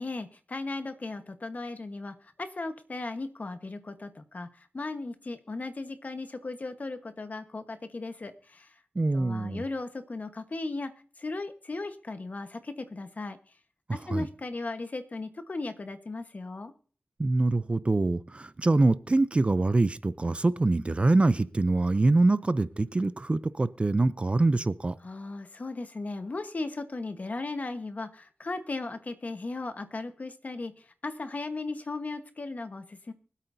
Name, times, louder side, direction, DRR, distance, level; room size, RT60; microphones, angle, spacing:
voice 1, 0.0-8.7 9.1-10.9 11.2-13.6 13.9-16.7 25.0-33.1, left 3 dB, 50° left, 1.2 m, -37 dB
voice 2, 9.0-9.6 13.9-14.3 17.2-24.9, right 2 dB, 35° right, 0.5 m, -24 dB
24.0 x 8.4 x 2.7 m
wide cardioid pair, 85°, 3 cm